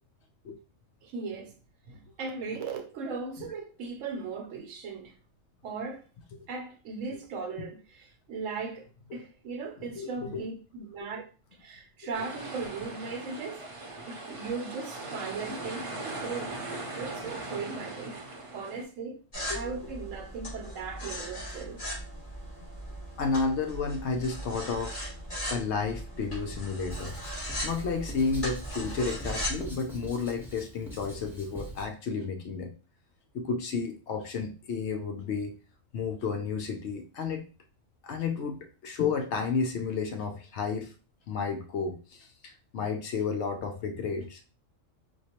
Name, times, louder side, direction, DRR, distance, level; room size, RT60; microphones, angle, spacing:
voice 1, 1.0-1.5 1.9-5.1 5.6-6.1 6.5-8.9 9.1-11.2 11.6-13.6 14.1-18.2 18.5-19.2 19.5-21.8, right 4 dB, 75° right, 1.0 m, -38 dB
voice 2, 10.0-10.4 19.5-19.7 23.2-25.1 25.5-27.1 27.6-32.7 33.3-35.6 35.9-37.4 38.0-40.9 41.3-44.4, left 5 dB, 65° left, 0.8 m, -32 dB
sound 1, 12.1-18.8, right 2 dB, 35° right, 0.6 m, -39 dB
sound 2, 19.3-29.7, equal, 40° left, 2.0 m, -38 dB
Writing, 26.9-31.9, equal, ahead, 0.8 m, -43 dB
4.5 x 2.2 x 2.9 m
omnidirectional pair, 1.4 m